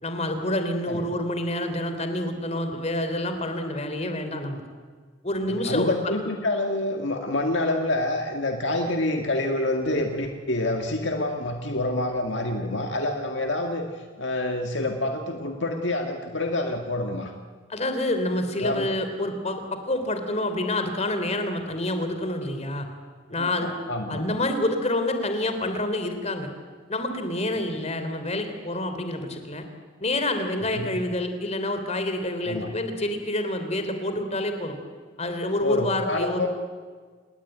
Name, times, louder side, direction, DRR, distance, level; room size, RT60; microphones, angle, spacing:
voice 1, 0.0-4.6 5.2-6.0 17.7-22.9 23.3-23.7 24.1-26.5 26.9-29.6 30.0-34.8 35.2-36.5, left 1 dB, 35° left, 7 dB, 3.4 m, -27 dB
voice 2, 5.5-17.4 18.6-19.0 23.4-24.2 30.7-30.9 32.5-32.7 35.6-36.5, left 1 dB, 70° left, 4 dB, 1.9 m, -27 dB
28.5 x 20.0 x 9.2 m, 1.5 s
head